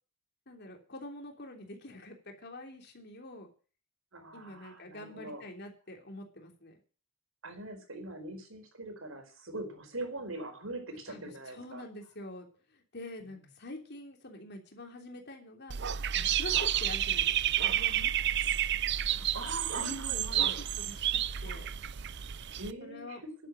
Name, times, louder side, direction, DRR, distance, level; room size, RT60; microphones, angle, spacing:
voice 1, 0.5-3.5 4.3-6.8 11.1-12.5 12.7-15.8 16.1-18.1 19.7-21.7 22.8-23.2, left 1 dB, 55° left, 3 dB, 3.2 m, -46 dB
voice 2, 4.1-5.5 7.4-11.8 13.3-13.4 16.4-16.7 19.1-20.6 22.4-23.3, right 2 dB, 75° right, 5 dB, 4.7 m, -42 dB
Dog / Bird, 15.7-22.7, right 11 dB, 55° right, 0.6 m, -30 dB
11.0 x 8.8 x 8.8 m, 0.39 s
head